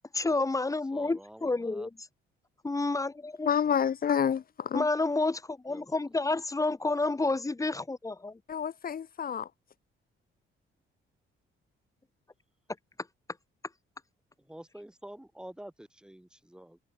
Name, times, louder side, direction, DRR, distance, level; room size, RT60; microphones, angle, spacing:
voice 1, 0.1-1.9 2.6-3.5 4.7-8.4, left 3 dB, 15° left, 1.9 m, -29 dB
voice 2, 0.9-1.9 5.7-6.0 14.5-16.8, right 1 dB, 5° right, 3.0 m, -48 dB
voice 3, 3.4-4.9 8.5-9.5, left 8 dB, 45° left, 1.9 m, -28 dB
cardioid pair, 135°, 21 cm